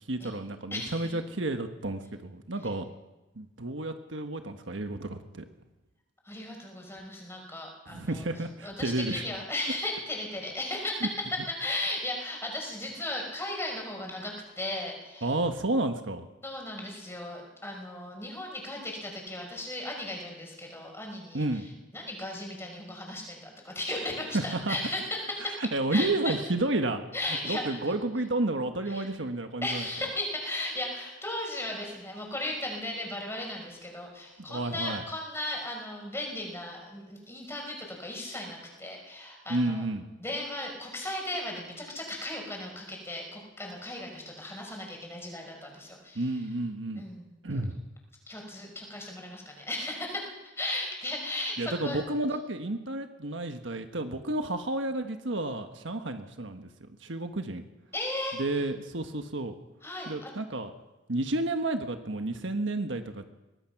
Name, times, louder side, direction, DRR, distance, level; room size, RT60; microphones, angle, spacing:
voice 1, 0.1-2.9 3.3-5.4 7.9-9.2 11.0-11.1 15.2-16.3 21.3-21.7 24.3-24.8 25.6-27.0 27.4-29.8 34.4-35.0 39.5-40.1 46.1-47.0 47.4-47.8 51.6-56.7 57.0-57.6 58.4-59.6 60.1-60.7 61.1-63.3, right 2 dB, 70° right, 7 dB, 1.4 m, -31 dB
voice 2, 0.7-1.0 6.2-8.2 8.6-15.3 16.4-21.4 21.9-26.3 27.1-27.8 28.9-29.1 29.6-39.8 40.2-46.3 47.0-47.3 48.3-52.0 57.9-58.4 59.8-60.3, left 1 dB, 15° left, 1 dB, 5.7 m, -36 dB
22.5 x 19.5 x 6.0 m, 1.0 s
head